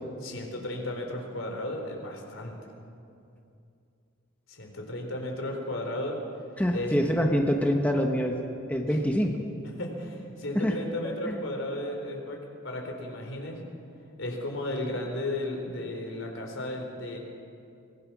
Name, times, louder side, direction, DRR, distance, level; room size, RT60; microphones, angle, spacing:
voice 1, 0.2-2.5 4.5-6.2 6.7-6.9 8.9-9.0 9.8-12.4 12.6-13.6 14.2-17.2, left 1 dB, 70° left, 2 dB, 4.2 m, -34 dB
voice 2, 6.6-8.4 8.7-9.3 10.5-10.7 11.3-11.4, equal, 5° left, 1 dB, 1.2 m, -25 dB
24.5 x 20.0 x 6.2 m, 2.5 s
head